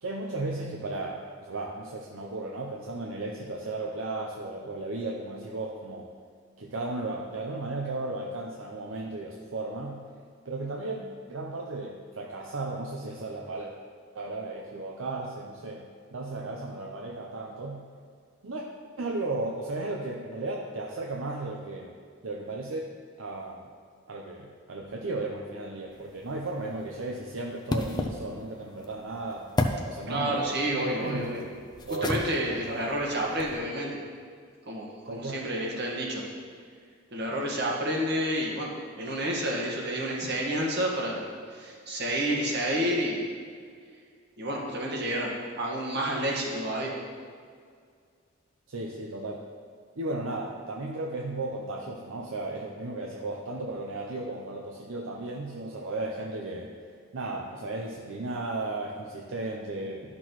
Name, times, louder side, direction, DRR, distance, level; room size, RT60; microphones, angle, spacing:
voice 1, 0.0-6.1 6.6-10.0 10.4-13.7 14.1-17.8 18.4-18.6 19.0-21.9 22.2-22.9 23.2-23.6 24.1-29.5 29.9-31.4 31.9-32.8 35.1-35.5 48.7-49.4 50.0-56.7 57.1-60.0, right 2 dB, 75° right, -1 dB, 0.7 m, -35 dB
sound 1, 25.9-33.6, left 2 dB, 20° left, 0.5 m, -35 dB
voice 2, 30.1-31.4 32.0-34.0 34.7-36.3 37.1-41.2 41.5-43.2 44.4-46.9, right 1 dB, 55° right, -2 dB, 1.5 m, -30 dB
12.0 x 6.1 x 3.1 m, 2.1 s
head